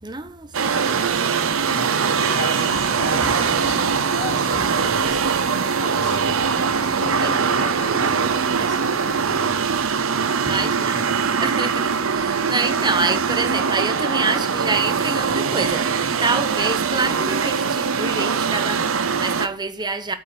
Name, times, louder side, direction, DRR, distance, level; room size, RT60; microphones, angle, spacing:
voice 1, 0.0-1.6 6.7-7.3 8.6-8.8 10.5-20.1, right 3 dB, 20° right, 0.9 m, -27 dB
sound 1, 0.5-19.5, right 6 dB, 75° right, 0.7 m, -22 dB
voice 2, 1.6-6.2 6.8-9.5 10.6-11.3, left 2 dB, 35° left, 2.6 m, -36 dB
sound 2, 2.7-15.3, left 1 dB, 80° left, 1.5 m, -43 dB
Bowed string instrument, 10.4-14.2, right 2 dB, 45° right, 2.2 m, -45 dB
8.3 x 5.5 x 7.8 m
head